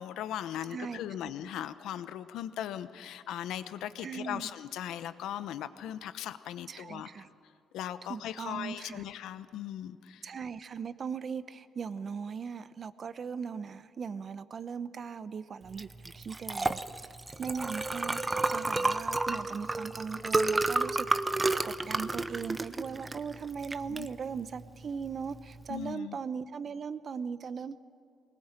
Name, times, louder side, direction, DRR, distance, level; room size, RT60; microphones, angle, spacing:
voice 1, 0.0-7.3 7.7-10.3 23.9-24.1 25.7-26.2, left 11 dB, 85° left, 12 dB, 0.9 m, -39 dB
voice 2, 0.7-1.3 4.0-4.5 6.7-7.3 8.1-9.1 10.2-16.8 17.4-21.1 21.6-27.8, right 6 dB, 50° right, 14 dB, 0.9 m, -39 dB
Liquid, 15.7-25.9, right 2 dB, 20° right, 0.8 m, -32 dB
21.0 x 19.5 x 9.0 m, 2.4 s
cardioid pair, 90°, 0 cm